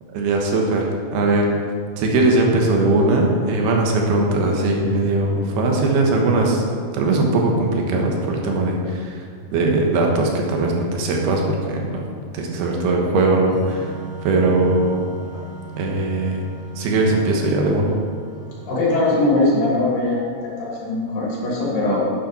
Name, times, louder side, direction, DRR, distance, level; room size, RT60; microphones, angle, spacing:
voice 1, 0.1-1.5 2.0-6.6 6.9-12.1 12.3-13.9 14.2-15.1 15.8-16.4 16.8-17.9, right 2 dB, 85° right, 0 dB, 3.3 m, -20 dB
Organ, 13.4-20.9, equal, 60° left, 4.6 m, -41 dB
voice 2, 18.7-22.0, left 2 dB, 80° left, -6 dB, 4.7 m, -21 dB
10.0 x 8.6 x 4.3 m, 2.1 s
omnidirectional pair, 4.5 m